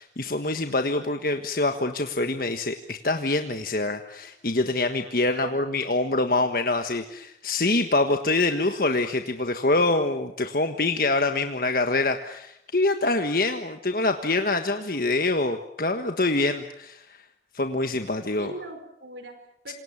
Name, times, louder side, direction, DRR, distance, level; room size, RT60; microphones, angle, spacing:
voice 1, 0.0-17.2 17.5-18.5 19.7-19.8, left 2 dB, 55° left, 6 dB, 1.5 m, -25 dB
voice 2, 18.3-19.7, right 2 dB, 85° right, 7 dB, 5.0 m, -41 dB
27.5 x 27.0 x 7.4 m, 0.76 s
head